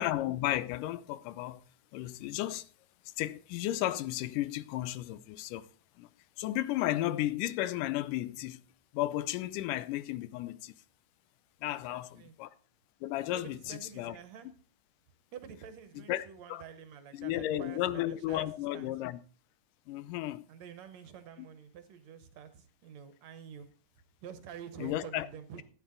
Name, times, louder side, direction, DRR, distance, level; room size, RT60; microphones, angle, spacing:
voice 1, 0.0-1.6 1.9-2.7 3.2-5.7 6.0-6.1 6.4-8.6 8.9-10.7 11.6-12.5 13.0-14.2 16.1-16.6 17.1-19.2 19.9-20.5 24.8-25.3, left 14 dB, 90° left, 2.3 m, -34 dB
voice 2, 11.7-12.3 13.3-14.5 15.3-18.5 18.7-18.9 20.5-23.7 24.2-25.6, right 8 dB, 65° right, 2.0 m, -48 dB
13.5 x 9.7 x 3.8 m
omnidirectional pair, 3.6 m